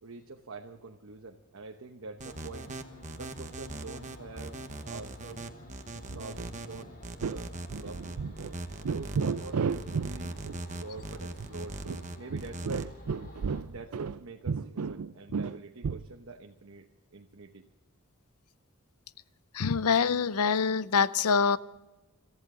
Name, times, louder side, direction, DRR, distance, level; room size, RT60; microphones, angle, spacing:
voice 1, 0.0-2.7 3.2-4.6 4.8-5.5 6.1-7.0 7.3-7.5 7.8-8.3 8.9-11.8 12.2-13.0 13.6-17.7, right 3 dB, 65° right, 1.0 m, -45 dB
sound 1, 2.2-13.6, left 1 dB, 45° left, 3.2 m, -51 dB
sound 2, 2.2-12.8, right 2 dB, 35° right, 1.1 m, -40 dB
sound 3, 6.1-6.5 6.7-6.8 7.2-7.4 7.7-8.5 8.8-10.1 10.4-10.6 11.0-11.1 11.4-11.5 11.8-14.2 14.5-16.1, right 5 dB, 85° right, 0.5 m, -33 dB
voice 2, 19.5-21.6, left 6 dB, 85° left, 0.6 m, -25 dB
26.5 x 14.5 x 3.8 m
head